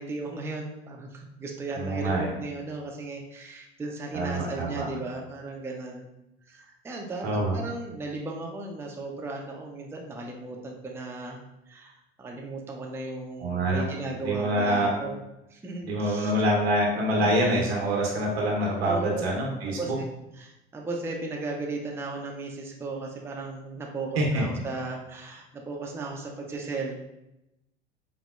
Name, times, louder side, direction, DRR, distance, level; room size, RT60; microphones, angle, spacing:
voice 1, 0.0-6.1 6.5-11.4 11.7-11.9 12.2-15.1 15.5-16.3 17.1-17.6 18.8-19.2 19.6-20.1 20.3-27.0, right 2 dB, 10° right, 0 dB, 0.4 m, -36 dB
voice 2, 1.7-2.3 4.1-4.8 7.2-7.6 13.4-13.8 14.2-14.9 15.8-19.9 24.2-24.4, right 1 dB, 85° right, -1 dB, 0.9 m, -25 dB
4.1 x 2.0 x 2.3 m, 0.90 s
hypercardioid pair, 80°, 31 cm